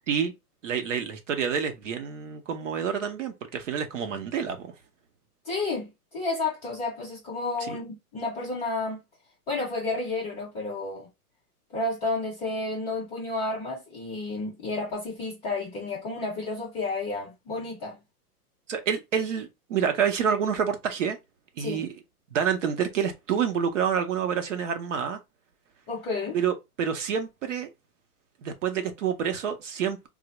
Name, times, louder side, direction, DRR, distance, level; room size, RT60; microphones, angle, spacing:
voice 1, 0.6-4.7 7.6-7.8 18.7-21.2 21.6-21.9 22.3-25.2 26.3-27.7 28.4-30.1, right 7 dB, 50° right, 0.6 m, -28 dB
voice 2, 5.4-9.0 9.5-11.1 11.7-18.0 21.6-21.8 25.9-26.4, left 3 dB, 10° left, 0.5 m, -31 dB
3.5 x 2.0 x 2.9 m
hypercardioid pair, 155°, 47 cm